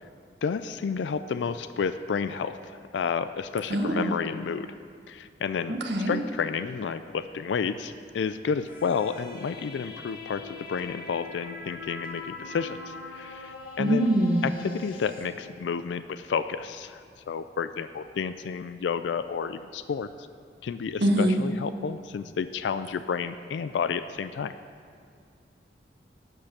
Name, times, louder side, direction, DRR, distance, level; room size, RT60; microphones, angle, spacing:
voice 1, 0.4-4.7 5.1-5.8 6.1-14.1 14.4-20.1 20.6-24.5, left 6 dB, 90° left, 12 dB, 0.4 m, -31 dB
voice 2, 3.7-4.1 5.7-6.1 13.8-14.5 21.0-21.4, right 1 dB, 75° right, 1 dB, 1.1 m, -23 dB
sound 1, 8.7-15.3, left 3 dB, 50° left, 1.6 m, -42 dB
12.0 x 5.8 x 6.7 m, 2.2 s
head